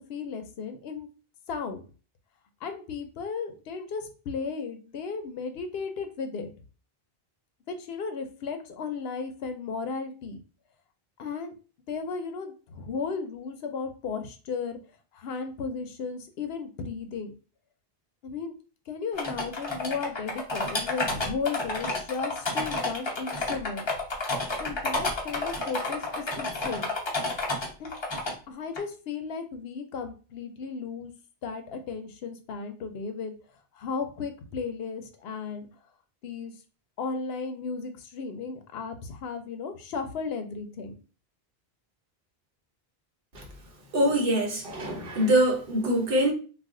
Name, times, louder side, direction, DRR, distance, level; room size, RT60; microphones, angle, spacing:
voice 1, 0.1-1.1 1.5-1.8 2.6-6.5 7.7-10.4 11.2-11.5 11.9-14.8 15.1-17.3 18.2-18.5 18.9-23.9 24.6-26.9 27.8-27.9 28.5-31.1 31.4-33.3 33.7-35.7 36.2-36.5 37.0-41.0, left 5 dB, 80° left, 0.8 m, -35 dB
sound 1, 19.2-28.3 28.8-28.9, left 2 dB, 30° left, 0.7 m, -30 dB
voice 2, 43.9-46.3, right 1 dB, 65° right, 1.0 m, -24 dB
2.4 x 2.3 x 3.6 m
omnidirectional pair, 1.0 m